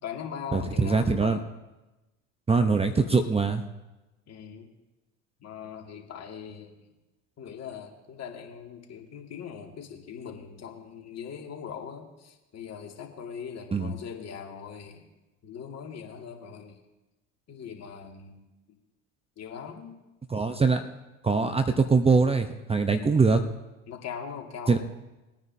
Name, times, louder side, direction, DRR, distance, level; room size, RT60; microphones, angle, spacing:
voice 1, 0.0-1.5 4.3-4.7 5.4-6.9 7.4-15.1 15.4-16.8 17.5-18.4 19.4-20.0 23.9-24.8, left 7 dB, 40° left, 2 dB, 2.2 m, -41 dB
voice 2, 0.5-1.4 2.5-3.6 13.7-13.9 20.3-20.8 21.2-23.4 24.7-24.8, right 4 dB, 15° right, 8 dB, 0.8 m, -23 dB
21.0 x 9.6 x 2.8 m, 1.0 s
hypercardioid pair, 80°, 38 cm